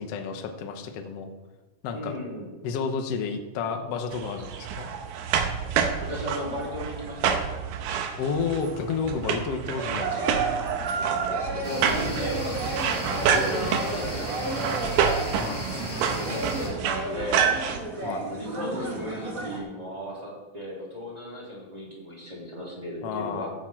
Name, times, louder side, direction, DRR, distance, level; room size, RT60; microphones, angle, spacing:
voice 1, 0.0-1.3 1.8-2.1 2.6-4.9 8.2-10.3 15.4-15.6 18.0-18.2 23.0-23.5, left 5 dB, 80° left, 5 dB, 1.3 m, -31 dB
voice 2, 1.9-2.5 6.0-7.4 11.4-15.0 16.1-17.6 18.2-23.5, equal, 10° right, -5 dB, 3.0 m, -36 dB
sound 1, 4.1-17.8, right 7 dB, 75° right, 2.2 m, -28 dB
sound 2, 10.1-19.6, right 2 dB, 45° right, 1.0 m, -34 dB
sound 3, 11.6-16.7, equal, 15° left, 3.6 m, -35 dB
15.0 x 8.6 x 4.5 m, 1.2 s
omnidirectional pair, 4.4 m